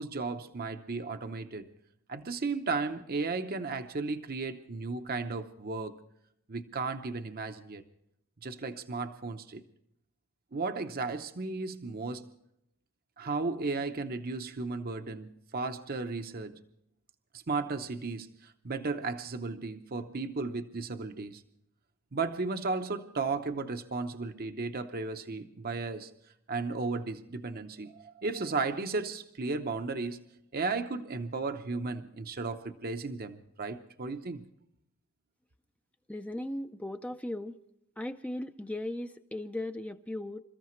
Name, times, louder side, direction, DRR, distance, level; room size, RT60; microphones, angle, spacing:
voice 1, 0.0-1.7 2.1-6.0 6.5-7.8 8.4-9.6 10.5-12.3 13.2-16.6 17.5-21.4 22.1-26.1 26.5-30.2 30.5-34.4, right 3 dB, 45° right, 7 dB, 0.8 m, -34 dB
voice 2, 36.1-37.6 38.0-40.4, left 1 dB, 5° left, 8 dB, 0.5 m, -37 dB
27.5 x 14.0 x 3.1 m, 0.77 s
head